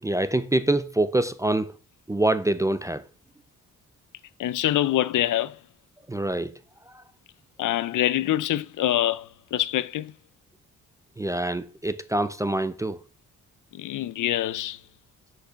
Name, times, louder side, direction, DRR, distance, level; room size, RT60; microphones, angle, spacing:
voice 1, 0.0-1.7 2.1-3.0 6.1-6.5 6.9-7.0 11.2-13.0, right 2 dB, 10° right, 0.3 m, -25 dB
voice 2, 4.4-5.6 7.6-10.1 13.7-14.8, left 13 dB, 70° left, 0.6 m, -25 dB
6.4 x 6.0 x 5.7 m
cardioid pair, 145°, 32 cm